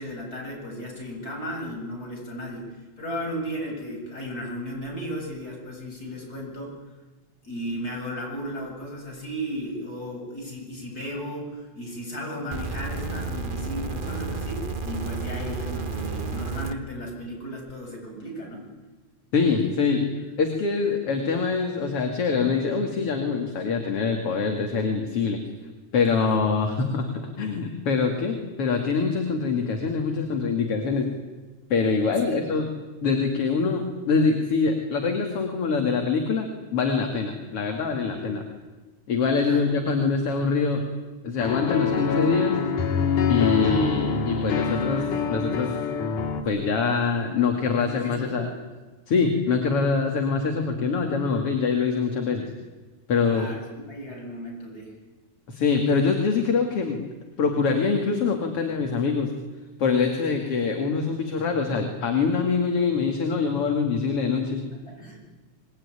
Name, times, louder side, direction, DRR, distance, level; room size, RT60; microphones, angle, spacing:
voice 1, 0.0-6.8 7.4-18.7 26.1-26.3 32.2-32.4 38.1-38.3 39.4-39.7 47.8-48.5 53.2-54.9 64.9-65.3, equal, 25° left, 0 dB, 8.3 m, -35 dB
sound 1, 12.5-16.7 17.7-17.8, right 4 dB, 75° right, 0.4 m, -31 dB
voice 2, 19.3-20.1 20.4-25.4 25.9-31.1 31.7-32.7 33.0-38.4 39.1-40.8 41.2-42.6 43.3-45.8 46.4-48.5 49.1-52.5 53.1-53.5 55.5-57.0 57.4-59.3 59.8-64.7, left 5 dB, 50° left, 3 dB, 3.1 m, -24 dB
sound 2, 41.4-46.4, left 6 dB, 90° left, 3.8 m, -25 dB
26.0 x 21.0 x 9.9 m, 1.3 s
omnidirectional pair, 3.5 m